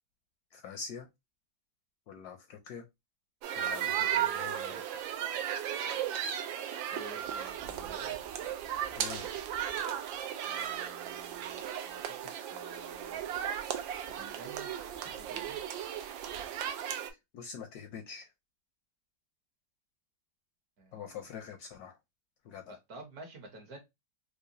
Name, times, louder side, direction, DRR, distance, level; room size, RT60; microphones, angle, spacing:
voice 1, 0.5-1.1 2.1-2.8 3.6-5.0 9.0-9.3 17.3-18.3 20.9-22.0 22.4-22.8, left 6 dB, 75° left, 0.9 m, -45 dB
sound 1, 3.4-17.1, right 10 dB, 90° right, 1.4 m, -35 dB
voice 2, 6.9-8.2 10.4-13.2 14.2-14.7 15.0-15.6 20.8-21.3 22.7-23.8, right 2 dB, 55° right, 1.4 m, -51 dB
4.7 x 2.1 x 2.7 m
omnidirectional pair, 2.1 m